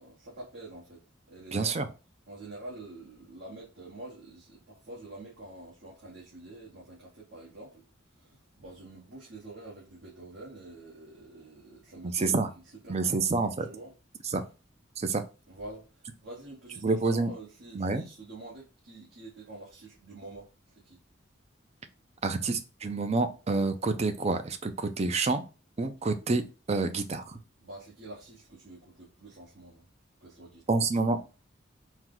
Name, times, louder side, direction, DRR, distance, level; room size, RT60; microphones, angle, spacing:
voice 1, 0.0-1.9 2.3-13.9 15.5-21.0 27.6-29.9 30.2-31.1, right 2 dB, 65° right, 1.4 m, -47 dB
voice 2, 1.5-1.9 12.0-12.5 12.9-13.7 14.3-14.4 15.0-15.2 16.8-17.3 17.8-18.0 22.2-25.4 25.8-26.4 26.7-27.4 30.7-31.2, right 3 dB, 35° right, 0.5 m, -28 dB
4.5 x 2.2 x 3.8 m
head